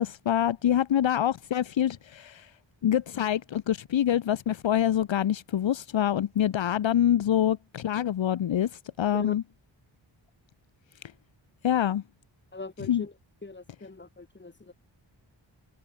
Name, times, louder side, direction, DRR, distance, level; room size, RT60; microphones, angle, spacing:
voice 1, 0.0-2.5 2.8-9.4 11.6-12.0 12.8-13.0, left 10 dB, 75° left, 0.9 m, -26 dB
voice 2, 12.5-13.1 13.4-14.7, left 3 dB, 25° left, 2.2 m, -40 dB
wide cardioid pair, 125°, 46 cm